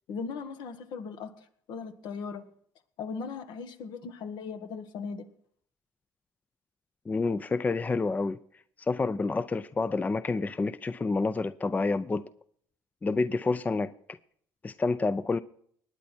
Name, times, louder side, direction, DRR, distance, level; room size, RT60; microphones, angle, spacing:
voice 1, 0.1-2.5 3.0-5.3, left 5 dB, 70° left, 1.5 m, -38 dB
voice 2, 7.1-8.4 8.8-12.3 13.0-13.9 14.6-15.4, left 3 dB, 20° left, 0.5 m, -28 dB
19.5 x 9.3 x 4.4 m
cardioid pair, 95°, 8 cm